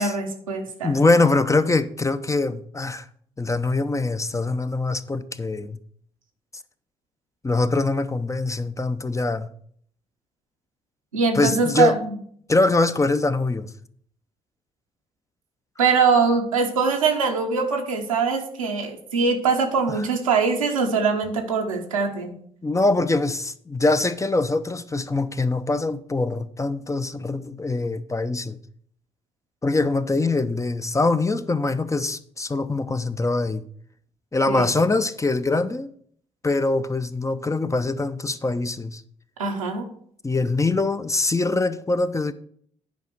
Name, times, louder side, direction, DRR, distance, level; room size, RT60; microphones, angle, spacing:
voice 1, 0.0-1.0 11.1-12.1 15.8-22.3 34.5-34.7 39.4-39.9, right 5 dB, 85° right, 0.9 m, -22 dB
voice 2, 0.8-3.1 3.4-5.8 7.4-9.5 11.3-11.9 12.5-13.7 22.6-28.6 29.6-33.6 34.3-35.9 36.4-39.0 40.2-42.3, left 3 dB, 20° left, 0.7 m, -23 dB
9.4 x 5.0 x 6.2 m
figure-of-eight pair, 40°, 17 cm